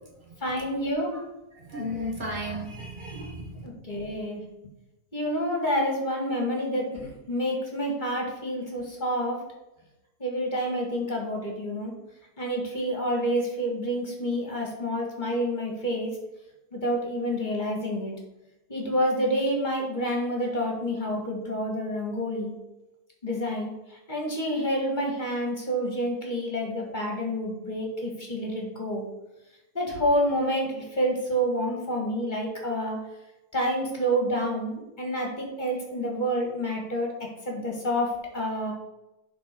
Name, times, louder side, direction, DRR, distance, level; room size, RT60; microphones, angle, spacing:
voice 1, 0.4-1.2 3.6-4.4 5.1-9.4 10.2-11.9 12.4-16.1 16.7-18.1 18.7-22.5 23.2-23.7 24.1-29.1 29.7-33.0 33.5-37.1 37.5-38.7, equal, 30° left, 0 dB, 2.0 m, -28 dB
voice 2, 1.6-3.7, equal, 30° right, 0 dB, 1.6 m, -34 dB
11.0 x 4.0 x 4.6 m, 0.95 s
omnidirectional pair, 1.6 m